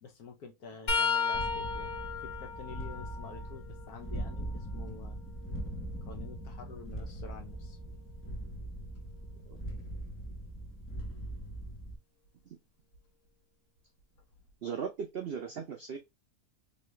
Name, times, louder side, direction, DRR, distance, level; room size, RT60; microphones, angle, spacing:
voice 1, 0.0-2.0 2.2-5.2 6.1-7.8, left 5 dB, 75° left, 1.3 m, -48 dB
sound 1, 0.9-4.6 5.2-7.1 10.0-10.2 11.4-11.6 12.9-13.0, left 5 dB, 55° left, 1.4 m, -36 dB
sound 2, 1.3-12.0, right 1 dB, 20° left, 0.3 m, -41 dB
voice 2, 14.6-16.0, right 6 dB, 85° right, 0.5 m, -37 dB
3.1 x 2.8 x 3.1 m
omnidirectional pair, 1.7 m